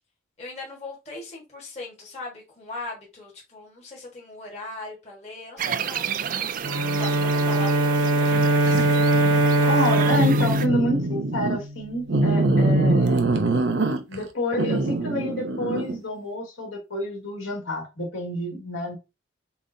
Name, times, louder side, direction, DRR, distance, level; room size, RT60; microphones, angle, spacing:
voice 1, 0.4-6.2 6.4-9.7, left 2 dB, 35° left, 1.5 m, -40 dB
sound 1, 5.6-10.7, right 7 dB, 40° right, 0.3 m, -31 dB
Bowed string instrument, 6.6-11.9, right 1 dB, 80° right, 0.9 m, -21 dB
voice 2, 9.7-13.3 14.1-18.9, left 1 dB, 70° left, 2.2 m, -28 dB
sound 2, 10.1-11.6 12.1-14.2 14.6-16.0, right 2 dB, 60° right, 0.7 m, -23 dB
7.0 x 2.5 x 2.6 m
head